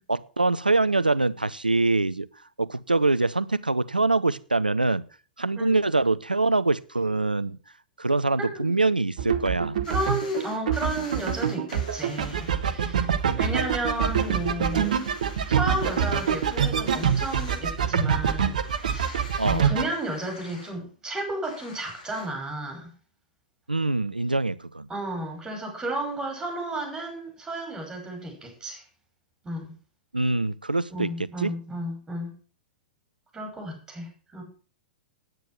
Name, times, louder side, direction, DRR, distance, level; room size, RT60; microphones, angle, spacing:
voice 1, 0.1-2.3 2.6-5.0 5.4-7.6 8.0-9.8 19.4-19.6 23.7-24.9 30.1-31.5, right 2 dB, 85° right, 18 dB, 0.6 m, -24 dB
voice 2, 8.4-8.8 9.9-13.1 13.4-14.9 15.5-22.9 24.9-28.8 29.4-29.7 30.9-32.3 33.3-34.4, right 1 dB, 10° right, 3 dB, 5.8 m, -33 dB
sound 1, 9.2-19.9, right 7 dB, 60° right, 1.1 m, -26 dB
sound 2, 9.8-12.5 13.0-13.1 13.5-13.6 13.8-18.0 18.2-18.3 18.6-20.7 21.4-22.3, left 3 dB, 60° left, 3.3 m, -47 dB
9.4 x 9.3 x 6.1 m, 0.39 s
figure-of-eight pair, 100°, 5 cm